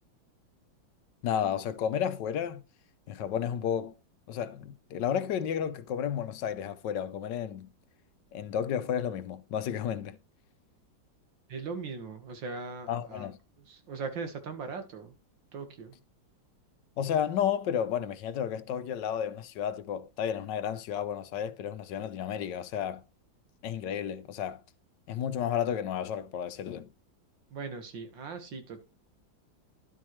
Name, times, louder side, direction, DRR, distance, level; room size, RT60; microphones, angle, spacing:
voice 1, 1.2-2.6 3.1-3.9 4.3-7.7 8.3-10.2 12.9-13.4 17.0-23.0 23.6-24.6 25.1-26.9, left 9 dB, 70° left, 1.3 m, -32 dB
voice 2, 11.5-13.3 13.6-15.1 15.5-16.0 27.5-28.8, right 4 dB, 75° right, 2.3 m, -39 dB
11.5 x 7.4 x 3.2 m
omnidirectional pair, 2.0 m